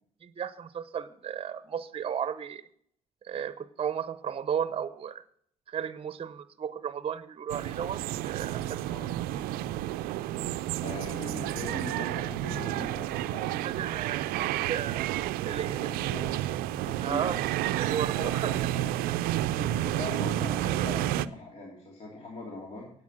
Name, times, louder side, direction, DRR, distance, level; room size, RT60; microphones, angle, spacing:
voice 1, 0.2-2.7 3.2-5.2 5.7-8.8 13.6-15.1 15.5-15.9 17.0-17.4 17.7-18.5, right 8 dB, 40° right, 14 dB, 0.8 m, -34 dB
sound 1, 7.5-21.3, right 13 dB, 80° right, 0.4 m, -30 dB
voice 2, 10.8-13.8 15.8-16.4 16.7-17.3 18.1-19.3 19.7-22.9, left 2 dB, 45° left, -1 dB, 2.9 m, -41 dB
9.5 x 8.1 x 6.0 m, 0.66 s
supercardioid pair, 65°, 15 cm